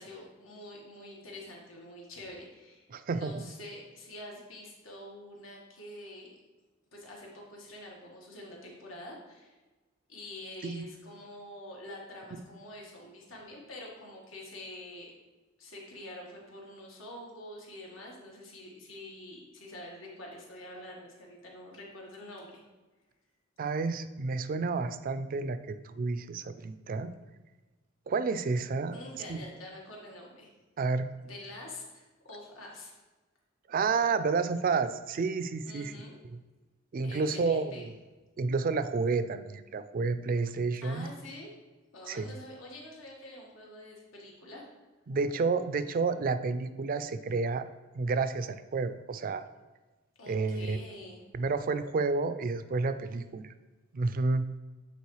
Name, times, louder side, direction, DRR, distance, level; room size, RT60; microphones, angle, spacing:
voice 1, 0.0-6.4 6.9-9.5 10.1-15.1 15.6-22.6 28.9-30.5 31.2-33.0 35.6-36.1 37.0-37.9 40.8-41.5 41.9-44.6 50.2-51.2, left 1 dB, 85° left, -2 dB, 1.5 m, -46 dB
voice 2, 2.9-3.4 10.6-10.8 23.6-27.1 28.1-29.0 29.3-29.4 30.8-31.1 33.7-35.9 36.3-36.4 36.9-37.9 38.4-41.1 42.1-42.3 45.1-47.6 47.9-49.4 50.3-50.8 51.3-53.5 53.9-54.4, right 4 dB, 45° right, 12 dB, 0.4 m, -30 dB
8.3 x 4.2 x 3.1 m, 1.2 s
head